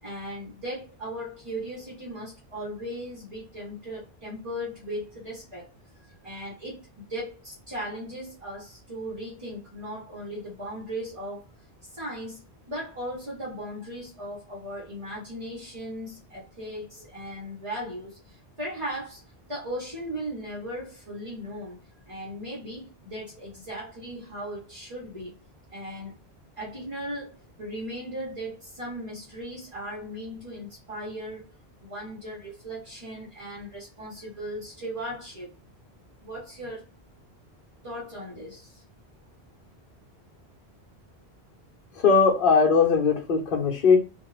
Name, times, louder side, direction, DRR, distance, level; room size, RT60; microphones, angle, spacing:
voice 1, 0.0-5.7 6.2-11.4 11.8-12.4 12.7-19.2 19.5-25.4 25.7-26.2 26.6-35.5 36.2-36.9 37.8-38.8, equal, 30° right, 1.0 m, -37 dB
voice 2, 41.9-44.0, left 5 dB, 55° left, 1.0 m, -20 dB
2.5 x 2.4 x 3.1 m
omnidirectional pair, 1.1 m